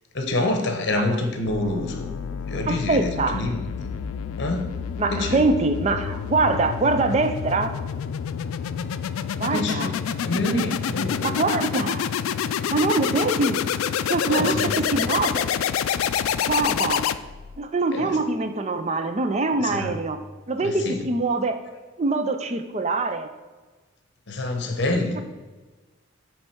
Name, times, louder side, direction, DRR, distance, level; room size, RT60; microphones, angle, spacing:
voice 1, 0.1-2.1 2.5-3.9 4.4-4.7 5.1-5.4 6.1-6.2 9.5-11.3 14.3-14.7 17.9-18.2 19.6-20.0 20.6-21.1 24.3-25.2, left 2 dB, 55° left, 4 dB, 0.9 m, -27 dB
sound 1, 1.5-17.6, left 8 dB, 90° left, 0.3 m, -28 dB
voice 2, 2.7-3.4 5.0-7.7 9.4-9.9 11.2-12.1 12.7-13.7 14.1-15.6 16.5-17.0 17.6-20.2 20.5-21.6 22.0-23.3, right 3 dB, 35° right, 8 dB, 0.4 m, -24 dB
7.8 x 3.2 x 4.5 m, 1.3 s
head